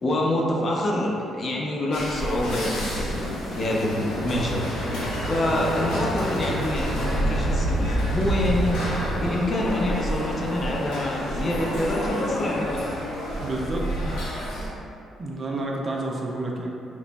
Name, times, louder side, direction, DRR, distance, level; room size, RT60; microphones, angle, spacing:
voice 1, 0.0-4.6 5.2-13.0, left 1 dB, 40° left, -2 dB, 0.5 m, -26 dB
sound 1, 1.9-14.7, equal, 85° left, 0.8 m, -29 dB
sound 2, 4.2-9.3, right 2 dB, 65° right, 0.8 m, -34 dB
sound 3, 5.7-13.2, equal, 15° right, 1.1 m, -40 dB
voice 2, 13.4-14.3 15.2-16.7, right 2 dB, 40° right, -1 dB, 0.5 m, -30 dB
3.1 x 2.2 x 3.9 m, 2.6 s
cardioid pair, 90°, 0 cm